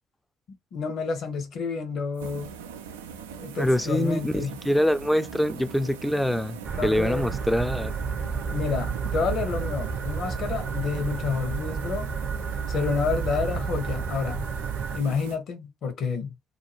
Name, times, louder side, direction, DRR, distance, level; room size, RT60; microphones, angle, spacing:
voice 1, 0.7-2.5 3.4-4.6 5.2-5.3 6.8-7.4 8.5-12.1 12.7-14.5 14.9-16.3, left 5 dB, 65° left, 0.8 m, -29 dB
sound 1, 2.1-15.4, right 8 dB, 85° right, 0.3 m, -41 dB
voice 2, 3.6-7.9, equal, 5° left, 0.4 m, -25 dB
sound 2, 6.6-15.0, right 6 dB, 50° right, 0.7 m, -31 dB
2.6 x 2.2 x 3.1 m
hypercardioid pair, 45°, 0 cm